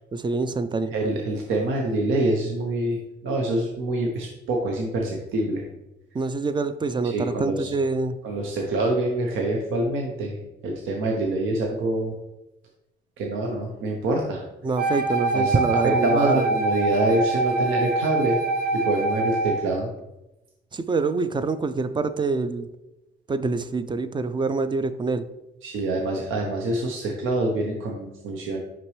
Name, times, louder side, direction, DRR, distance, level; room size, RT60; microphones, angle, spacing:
voice 1, 0.1-0.9 6.1-8.1 14.6-16.5 20.7-22.7 23.3-25.3, right 3 dB, 25° right, 12 dB, 0.4 m, -25 dB
voice 2, 0.9-5.7 7.1-7.7 8.2-12.1 13.2-14.5 15.3-15.5 15.8-18.4 18.7-19.9 25.6-28.6, right 2 dB, 85° right, 0 dB, 0.8 m, -26 dB
Wind instrument woodwind instrument, 14.8-19.7, right 3 dB, 55° right, 0.7 m, -24 dB
5.9 x 5.2 x 3.2 m, 0.96 s
cardioid pair, 90°, 20 cm